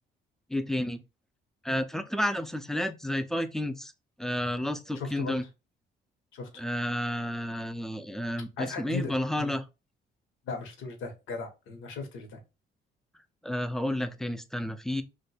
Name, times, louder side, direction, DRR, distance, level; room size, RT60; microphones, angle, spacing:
voice 1, 0.5-1.0 1.6-3.9 4.2-5.4 6.6-9.6 13.4-15.0, left 1 dB, ahead, 0.4 m, -31 dB
voice 2, 4.9-5.4 6.3-6.6 8.6-9.5 10.4-12.4, left 4 dB, 90° left, 0.9 m, -37 dB
2.6 x 2.2 x 4.0 m
cardioid pair, 90°, 20 cm